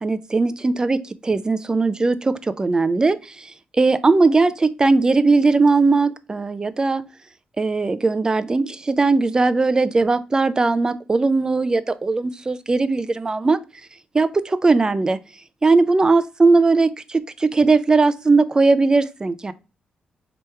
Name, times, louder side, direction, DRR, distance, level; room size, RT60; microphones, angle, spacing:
voice 1, 0.0-7.0 7.6-13.6 14.1-15.2 15.6-19.5, right 3 dB, 25° right, 0.4 m, -19 dB
3.3 x 2.9 x 3.3 m
cardioid pair, 85°, 3 cm